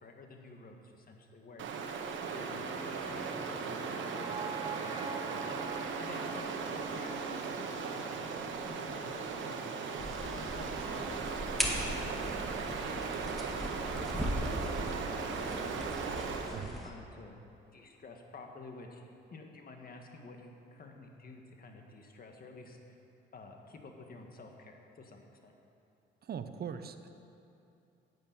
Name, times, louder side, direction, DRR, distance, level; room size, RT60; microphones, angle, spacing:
voice 1, 0.0-1.7 2.3-7.5 7.9-12.3 13.0-14.2 14.6-17.3 17.7-19.0 19.3-23.0 23.3-25.5, left 3 dB, 45° left, 3 dB, 1.7 m, -51 dB
Stream, 1.6-16.6, right 5 dB, 75° right, 1.2 m, -38 dB
sound 1, 2.6-8.7, right 4 dB, 20° right, 0.6 m, -45 dB
sound 2, 10.0-16.9, equal, ahead, 1.8 m, -38 dB
voice 2, 26.2-27.1, right 7 dB, 50° right, 10 dB, 0.8 m, -40 dB
10.0 x 8.8 x 8.9 m, 2.7 s
cardioid pair, 90°, 20 cm